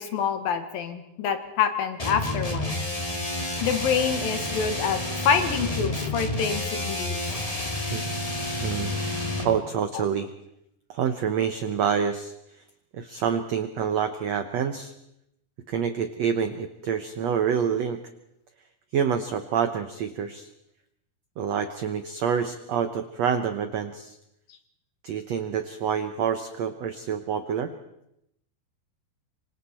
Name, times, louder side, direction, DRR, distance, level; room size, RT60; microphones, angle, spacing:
voice 1, 0.0-2.8 3.6-5.0 5.2-7.2, left 7 dB, 70° left, 8 dB, 3.2 m, -26 dB
sound 1, 2.0-9.6, left 1 dB, 15° left, 1.4 m, -30 dB
voice 2, 8.6-9.1 9.4-10.3 10.9-12.3 12.9-14.9 15.7-18.0 18.9-20.5 21.4-24.2 25.0-27.7, right 7 dB, 85° right, 9 dB, 1.5 m, -27 dB
26.0 x 25.5 x 4.4 m, 0.80 s
omnidirectional pair, 4.5 m